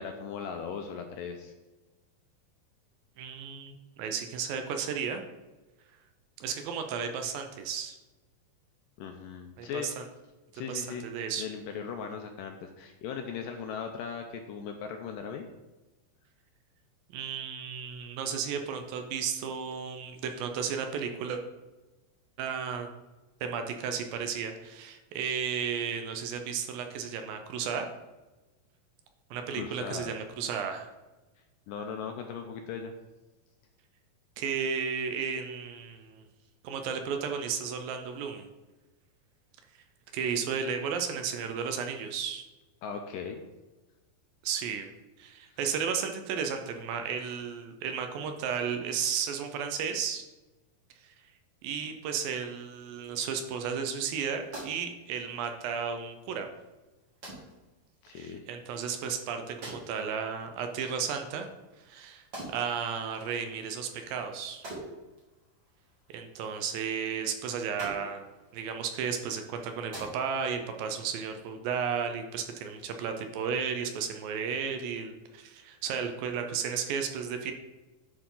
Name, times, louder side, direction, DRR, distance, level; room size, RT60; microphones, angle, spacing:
voice 1, 0.0-1.5 9.0-9.9 10.6-11.1 11.4-15.5 29.5-30.2 31.7-32.9 42.8-43.4 58.0-58.4, left 6 dB, 80° left, 4 dB, 2.0 m, -38 dB
voice 2, 3.2-5.2 6.4-8.0 9.6-10.0 10.7-11.5 17.1-21.4 22.4-22.9 23.4-27.9 29.3-30.9 34.4-36.2 36.6-38.5 40.1-42.4 44.4-44.9 45.2-50.2 51.0-51.1 51.6-56.5 58.1-61.5 61.8-64.6 66.1-68.3 68.5-77.5, right 7 dB, 75° right, 6 dB, 2.4 m, -33 dB
sound 1, 54.0-70.6, right 1 dB, 35° right, 2.3 m, -49 dB
10.5 x 4.9 x 3.8 m, 1.1 s
omnidirectional pair, 4.3 m